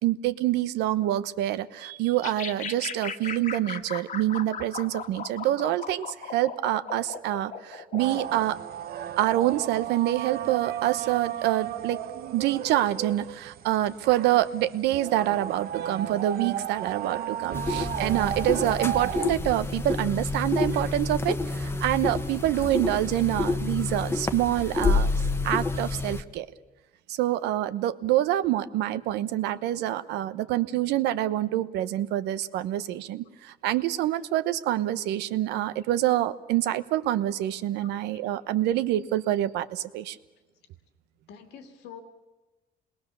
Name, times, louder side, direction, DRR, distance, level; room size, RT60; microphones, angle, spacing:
voice 1, 0.0-8.6 9.2-12.0 12.3-25.1 25.4-26.5 27.1-40.2, right 14 dB, 85° right, 12 dB, 1.0 m, -26 dB
sound 1, 2.2-8.5, left 6 dB, 50° left, 1.7 m, -37 dB
sound 2, 8.0-19.3, right 10 dB, 65° right, 0.9 m, -34 dB
sound 3, 17.5-26.2, left 3 dB, 15° left, 1.1 m, -28 dB
voice 2, 41.3-42.0, left 7 dB, 80° left, 6 dB, 2.6 m, -46 dB
27.5 x 21.0 x 6.9 m, 1.2 s
cardioid pair, 110°, 17 cm